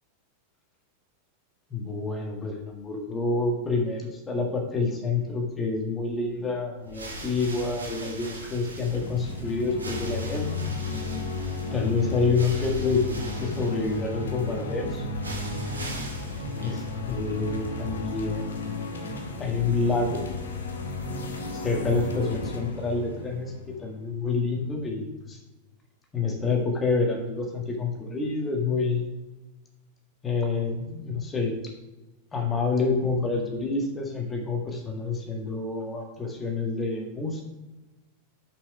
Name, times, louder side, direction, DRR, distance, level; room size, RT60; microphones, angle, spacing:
voice 1, 1.7-10.8 11.7-15.1 16.6-18.8 19.4-20.2 21.5-25.4 26.1-29.0 30.2-31.5 32.3-37.4, left 4 dB, 20° left, 1 dB, 1.6 m, -28 dB
sound 1, 6.8-17.4, equal, 75° right, 1.2 m, -41 dB
sound 2, 8.8-24.3, left 3 dB, 65° left, 1.0 m, -34 dB
6.2 x 5.3 x 4.8 m, 1.1 s
figure-of-eight pair, 90°, 0 cm